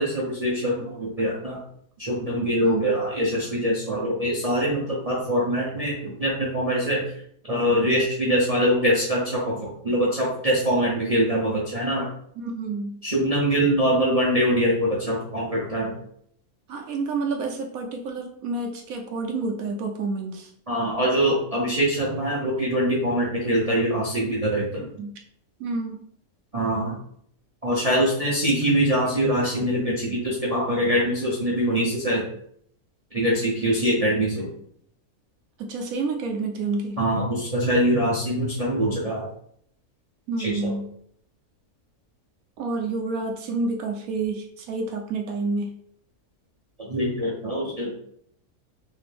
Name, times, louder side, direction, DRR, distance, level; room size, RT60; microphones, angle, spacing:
voice 1, 0.0-1.6 2.0-7.0 7.5-12.1 13.0-15.9 20.7-24.9 26.5-26.9 27.6-32.2 33.1-34.5 37.0-39.3 40.4-40.7 46.8-47.9, equal, 30° right, -5 dB, 0.7 m, -23 dB
voice 2, 12.4-13.0 16.7-20.5 24.8-25.2 25.6-26.0 35.6-37.0 40.3-40.9 42.6-45.8, right 3 dB, 70° right, 2 dB, 1.0 m, -29 dB
3.4 x 3.3 x 3.3 m, 0.66 s
omnidirectional pair, 1.6 m